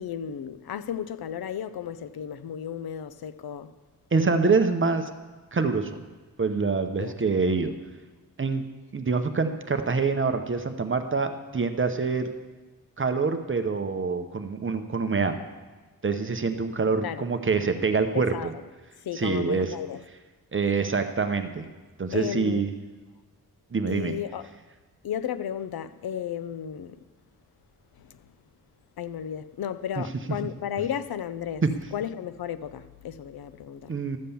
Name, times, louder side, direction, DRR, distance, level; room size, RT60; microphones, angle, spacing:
voice 1, 0.0-3.7 7.0-7.1 17.0-17.3 18.1-18.6 19.0-20.0 22.1-22.7 23.9-24.5 25.0-27.0 28.0-28.2 29.0-31.6 31.9-34.0, left 9 dB, 85° left, 0.6 m, -34 dB
voice 2, 4.1-5.1 5.5-6.0 6.4-7.7 8.4-8.6 8.9-12.3 13.0-15.4 16.0-18.3 19.1-19.7 20.5-21.7 22.0-22.7 23.7-24.1 31.6-31.7 33.9-34.2, right 4 dB, 35° right, 0.7 m, -25 dB
13.0 x 7.6 x 6.9 m
wide cardioid pair, 140°, 36 cm